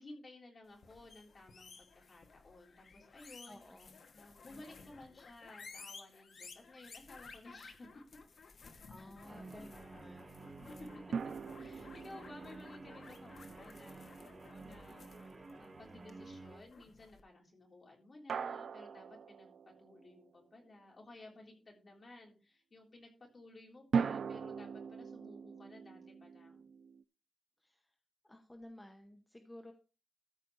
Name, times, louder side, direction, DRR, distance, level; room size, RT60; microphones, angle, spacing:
voice 1, 0.0-3.6 4.1-8.0 8.6-8.7 9.0-11.0 11.6-26.6, left 2 dB, 40° left, -1 dB, 3.5 m, -56 dB
sound 1, 0.7-17.2, left 4 dB, 60° left, 1.1 m, -56 dB
voice 2, 3.4-4.0 4.5-4.9 8.9-10.5 12.9-13.0 27.6-27.9 28.2-29.7, left 1 dB, 10° left, 4 dB, 0.9 m, -55 dB
Guitar, 9.2-16.6, right 3 dB, 35° right, 3.8 m, -52 dB
sound 2, 11.1-14.5 18.3-20.3 23.9-27.0, right 6 dB, 85° right, 0.4 m, -40 dB
14.0 x 5.0 x 4.7 m, 0.34 s
wide cardioid pair, 180°, 0 cm